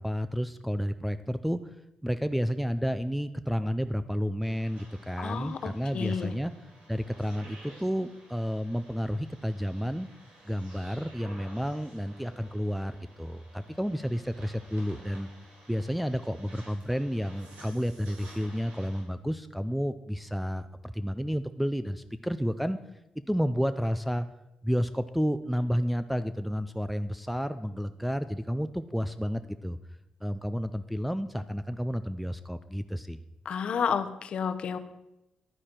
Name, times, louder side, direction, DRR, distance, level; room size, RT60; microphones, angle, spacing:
voice 1, 0.0-1.6 2.0-6.5 6.9-10.1 10.5-15.3 15.7-22.8 23.3-24.3 24.6-29.8 30.2-33.2, equal, ahead, 9 dB, 0.3 m, -31 dB
sound 1, 4.4-19.0, right 1 dB, 80° right, 3.6 m, -53 dB
voice 2, 5.2-6.3 33.4-34.8, left 7 dB, 50° left, 11 dB, 0.7 m, -31 dB
11.0 x 9.7 x 4.4 m, 0.90 s
cardioid pair, 155°, 2 cm